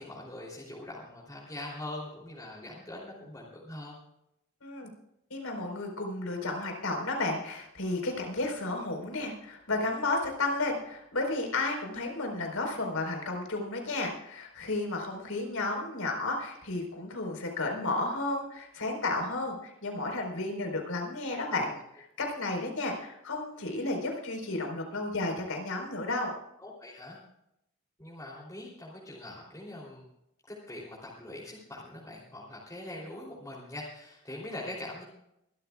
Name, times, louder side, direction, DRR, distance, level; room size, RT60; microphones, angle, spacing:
voice 1, 0.0-4.0 21.5-21.6 26.6-27.2 28.0-30.0 30.5-35.0, left 1 dB, 15° left, -5 dB, 3.3 m, -42 dB
voice 2, 5.3-26.3, left 2 dB, 90° left, 2 dB, 4.4 m, -32 dB
24.5 x 13.5 x 2.4 m, 0.81 s
head